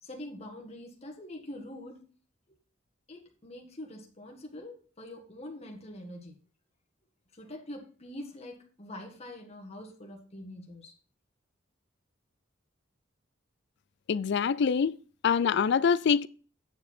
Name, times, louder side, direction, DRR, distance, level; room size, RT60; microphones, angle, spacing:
voice 1, 0.0-2.0 3.1-6.4 7.3-10.9, left 1 dB, 30° left, 1.7 m, -44 dB
voice 2, 14.1-15.0 15.2-16.3, left 6 dB, 60° left, 0.4 m, -25 dB
9.4 x 7.1 x 4.3 m
head